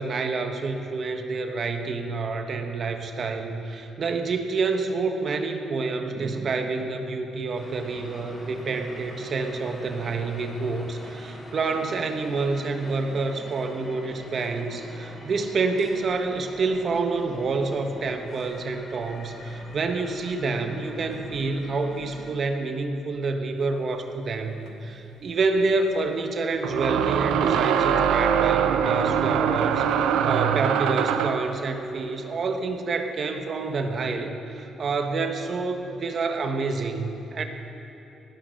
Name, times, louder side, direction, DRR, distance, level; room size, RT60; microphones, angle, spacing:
voice 1, 0.0-29.9 30.2-37.4, right 3 dB, 50° right, 5 dB, 1.4 m, -28 dB
sound 1, 7.6-22.3, left 1 dB, 35° left, 2.9 m, -44 dB
sound 2, 24.7-24.8 26.6-31.5, right 8 dB, 90° right, 0.8 m, -23 dB
18.5 x 10.5 x 6.6 m, 2.9 s
cardioid pair, 90°, 0 cm